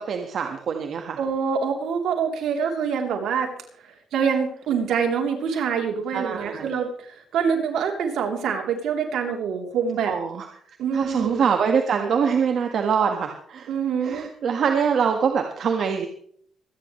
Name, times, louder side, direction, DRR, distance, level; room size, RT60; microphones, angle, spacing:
voice 1, 0.0-1.2 6.1-6.7 10.1-10.5 10.9-13.7 14.0-16.1, right 6 dB, 60° right, 4 dB, 1.6 m, -24 dB
voice 2, 1.2-3.5 4.1-10.1 10.8-11.5 13.7-14.3, right 6 dB, 75° right, 2 dB, 3.4 m, -25 dB
26.0 x 10.0 x 3.2 m, 0.62 s
cardioid pair, 90°, 0 cm